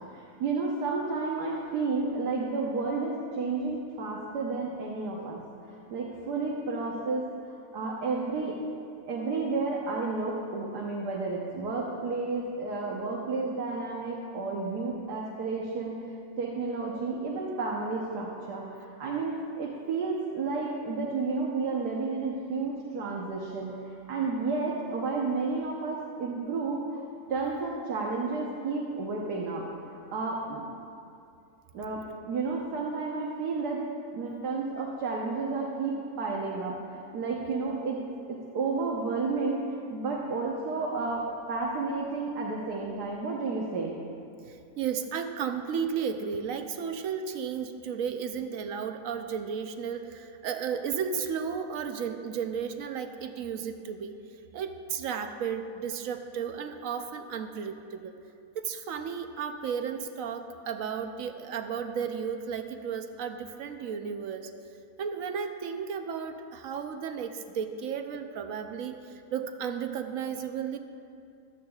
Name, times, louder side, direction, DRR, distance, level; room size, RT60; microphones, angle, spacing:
voice 1, 0.1-5.4 5.9-7.3 7.7-8.6 9.1-16.0 16.4-23.8 24.1-26.8 27.3-29.6 30.1-30.7 31.7-33.8 34.1-38.0 38.3-39.6 39.9-44.0, right 4 dB, 85° right, -2 dB, 1.6 m, -31 dB
voice 2, 44.4-54.1 54.5-58.2 58.5-64.5 65.0-69.0 69.3-70.8, right 7 dB, 65° right, 7 dB, 1.0 m, -34 dB
15.5 x 12.5 x 2.4 m, 2.6 s
omnidirectional pair, 1.7 m